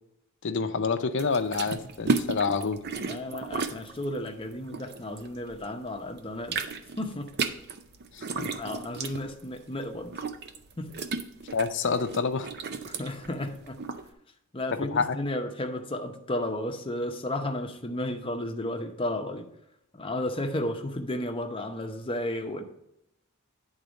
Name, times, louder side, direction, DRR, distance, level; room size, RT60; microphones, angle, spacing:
voice 1, 0.4-2.8 8.1-8.5 11.5-12.5 14.8-15.2, left 4 dB, 55° left, 8 dB, 0.6 m, -28 dB
sound 1, 1.2-5.7 6.0-14.1, right 4 dB, 50° right, 0.5 m, -34 dB
voice 2, 3.1-6.7 7.0-7.3 8.5-10.1 10.8-10.9 12.9-13.8 14.5-19.5 19.9-22.6, left 1 dB, 25° left, 5 dB, 0.8 m, -33 dB
9.3 x 3.9 x 5.1 m, 0.81 s
head